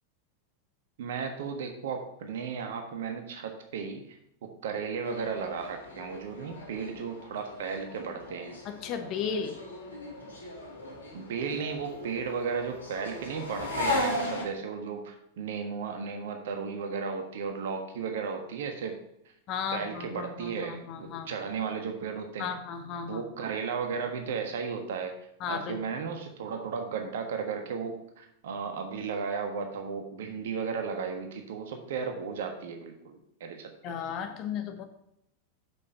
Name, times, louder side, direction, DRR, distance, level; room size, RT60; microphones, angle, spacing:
voice 1, 1.0-4.1 4.4-8.6 11.1-19.0 19.7-22.5 23.1-25.1 25.5-33.7, right 5 dB, 55° right, 4 dB, 1.4 m, -35 dB
sound 1, 5.0-14.4, left 1 dB, 75° left, 2.6 m, -37 dB
voice 2, 8.6-9.6 19.5-21.3 22.4-23.2 25.4-25.8 33.8-34.8, left 7 dB, 35° left, 6 dB, 1.2 m, -35 dB
7.4 x 6.5 x 5.4 m, 0.79 s
figure-of-eight pair, 90°, 0 cm